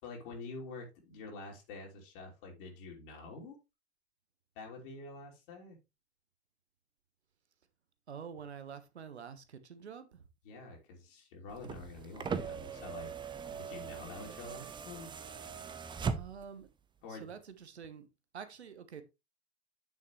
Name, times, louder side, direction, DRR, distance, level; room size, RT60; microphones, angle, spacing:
voice 1, 0.0-3.6 4.6-5.8 10.4-15.1 17.0-17.3, left 3 dB, 50° left, 3.1 m, -47 dB
voice 2, 8.1-10.2 16.1-16.7 17.1-18.1 18.3-19.0, right 7 dB, 70° right, 1.3 m, -47 dB
sound 1, 11.5-16.6 17.8-17.9, right 6 dB, 15° right, 0.7 m, -40 dB
9.1 x 6.5 x 3.1 m
figure-of-eight pair, 85°, 34 cm